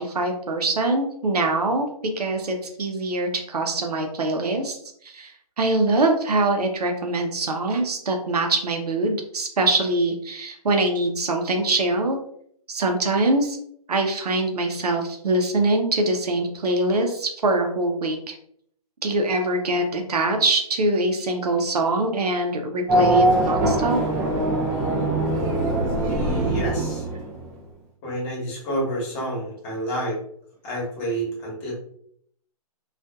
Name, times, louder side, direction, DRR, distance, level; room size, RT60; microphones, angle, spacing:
voice 1, 0.0-1.9 2.1-4.8 5.0-12.2 12.7-13.6 13.9-18.3 19.0-24.0, right 2 dB, 85° right, 3 dB, 0.7 m, -23 dB
Race car auto racing / Accelerating revving vroom, 22.9-27.6, right 1 dB, 20° right, 0.5 m, -22 dB
voice 2, 26.1-27.0 28.0-30.2 30.6-31.7, right 1 dB, 25° left, -3 dB, 1.2 m, -29 dB
2.6 x 2.4 x 2.2 m, 0.66 s
hypercardioid pair, 145°, 20 cm